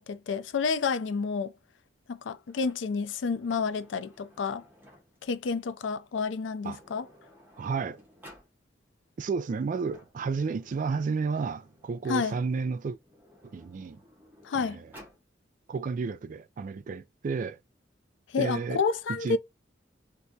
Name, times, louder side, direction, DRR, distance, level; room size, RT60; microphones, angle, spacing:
voice 1, 0.0-1.5 2.1-4.6 5.2-7.1 12.1-12.4 14.4-14.8 18.3-19.4, left 5 dB, 75° left, 0.4 m, -30 dB
Sliding door, 2.5-5.3 6.3-6.4 6.7-8.5 9.6-12.2 12.9-15.2, equal, 10° right, 1.1 m, -56 dB
voice 2, 7.6-8.0 9.2-13.0 13.4-14.0 14.5-14.9 15.7-17.6 18.4-18.8 19.1-19.4, right 4 dB, 45° right, 0.3 m, -32 dB
3.3 x 2.7 x 2.7 m
head